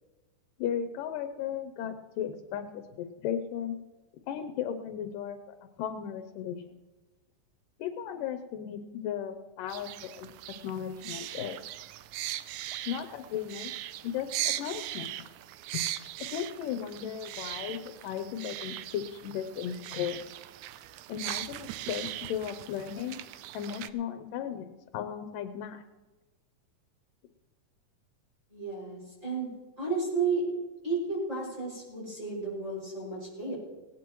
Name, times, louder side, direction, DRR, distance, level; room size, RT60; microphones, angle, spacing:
voice 1, 0.6-3.8 4.3-5.4 5.8-6.6 7.8-10.3 10.6-11.6 12.9-13.7 14.0-15.1 15.7-15.8 16.2-20.3 21.1-23.2 23.5-25.8, left 9 dB, 90° left, 7 dB, 2.4 m, -35 dB
sound 1, 9.7-23.9, right 14 dB, 80° right, 1.8 m, -39 dB
voice 2, 28.5-29.5 29.8-30.4 30.8-33.5, right 4 dB, 20° right, -7 dB, 6.3 m, -32 dB
18.5 x 18.0 x 3.1 m, 1.2 s
omnidirectional pair, 3.7 m